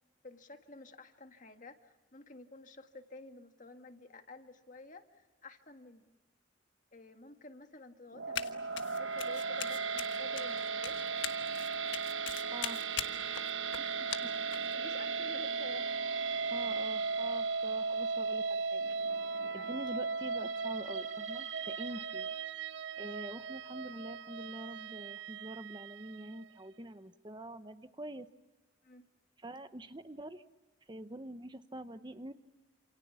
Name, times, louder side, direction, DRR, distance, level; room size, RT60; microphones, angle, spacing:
voice 1, 0.2-6.2 6.9-11.0 13.8-16.1 19.6-19.8 21.9-22.0 28.8-29.1, left 2 dB, 40° left, 7 dB, 1.8 m, -52 dB
sound 1, 8.1-26.4, right 5 dB, 75° right, 1.1 m, -36 dB
Run, 8.4-8.5 8.8-14.7, left 9 dB, 70° left, 1.4 m, -41 dB
voice 2, 12.5-12.8 14.3-14.4 16.5-18.8 19.5-22.3 23.0-28.3 29.4-30.4 30.9-32.3, right 1 dB, 25° right, 10 dB, 0.9 m, -45 dB
28.5 x 28.0 x 7.1 m, 1.1 s
head